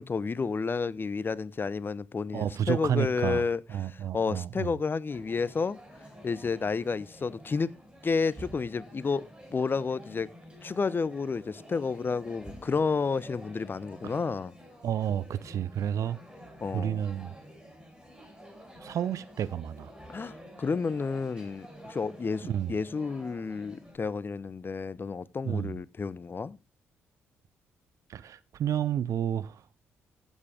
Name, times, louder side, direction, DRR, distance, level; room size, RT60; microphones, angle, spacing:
voice 1, 0.0-5.8 6.2-7.7 8.0-10.3 10.6-14.5 16.6-17.0 20.1-26.6, left 4 dB, 35° left, 0.7 m, -31 dB
voice 2, 2.3-3.4 3.7-4.7 14.0-14.1 14.8-16.2 16.7-17.3 18.8-19.9 22.4-22.7 25.4-25.7 28.1-29.6, right 10 dB, 55° right, 0.7 m, -30 dB
sound 1, 5.1-24.0, equal, 10° right, 7.7 m, -49 dB
15.0 x 7.2 x 3.6 m
figure-of-eight pair, 40°, 7 cm